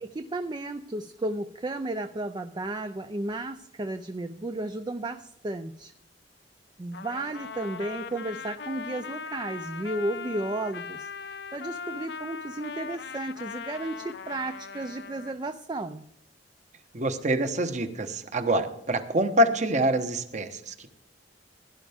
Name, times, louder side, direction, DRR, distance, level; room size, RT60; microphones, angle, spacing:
voice 1, 0.0-5.9 6.8-16.0, right 2 dB, 25° right, 9 dB, 0.5 m, -33 dB
Trumpet, 6.9-15.4, left 5 dB, 65° left, 0.7 m, -39 dB
voice 2, 16.9-20.9, right 1 dB, 40° right, 9 dB, 1.2 m, -26 dB
16.5 x 10.5 x 3.6 m, 0.77 s
head